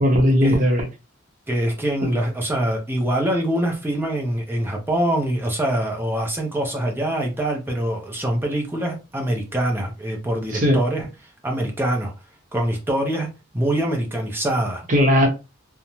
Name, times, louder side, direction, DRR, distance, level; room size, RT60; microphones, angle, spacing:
voice 1, 0.0-0.8 10.5-10.8 14.9-15.3, left 1 dB, 40° right, 0.8 m, -17 dB
voice 2, 1.5-11.1 11.4-12.1 12.5-14.9, right 1 dB, 10° right, 0.6 m, -24 dB
2.6 x 2.1 x 3.0 m
head